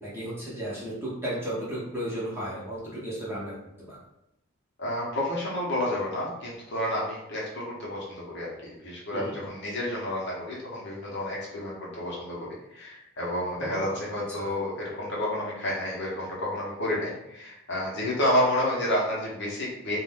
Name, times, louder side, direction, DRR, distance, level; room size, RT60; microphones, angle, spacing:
voice 1, 0.0-4.0 9.1-9.3 13.5-14.0 14.4-14.5, right 1 dB, 10° right, -7 dB, 0.7 m, -34 dB
voice 2, 4.8-20.0, left 1 dB, 50° left, -4 dB, 0.8 m, -30 dB
2.5 x 2.1 x 3.4 m, 0.84 s
head